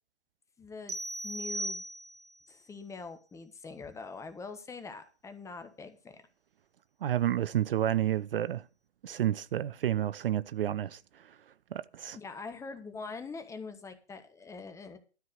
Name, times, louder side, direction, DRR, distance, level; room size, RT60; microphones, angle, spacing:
voice 1, 0.6-1.0 1.2-1.8 2.5-6.2 12.1-15.0, left 4 dB, 10° left, 1.2 m, -43 dB
sound 1, 0.9-2.4, right 1 dB, 80° right, 1.3 m, -37 dB
voice 2, 7.0-8.6 9.0-11.0 11.7-12.2, right 11 dB, 55° right, 0.5 m, -30 dB
13.0 x 4.6 x 8.1 m
figure-of-eight pair, 120°, 33 cm